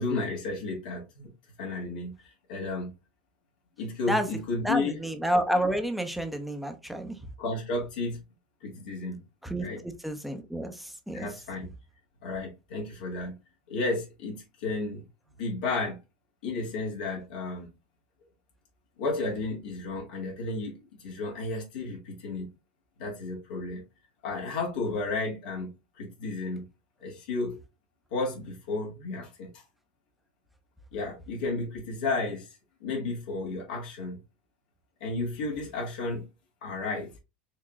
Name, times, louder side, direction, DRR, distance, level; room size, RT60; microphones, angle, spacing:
voice 1, 0.0-1.3 1.6-2.9 3.8-5.0 7.4-8.2 8.6-9.2 9.6-9.8 11.1-11.7 12.2-13.4 13.7-15.1 15.4-16.0 16.4-17.7 19.0-22.5 23.0-23.8 24.2-26.7 27.0-27.6 28.1-29.6 30.9-32.5 32.8-34.2 35.0-36.3 36.6-37.1, left 3 dB, 75° left, 1.5 m, -33 dB
voice 2, 4.6-7.2 9.4-11.3, right 1 dB, ahead, 0.8 m, -30 dB
4.7 x 2.9 x 2.4 m
hypercardioid pair, 100°, 5 cm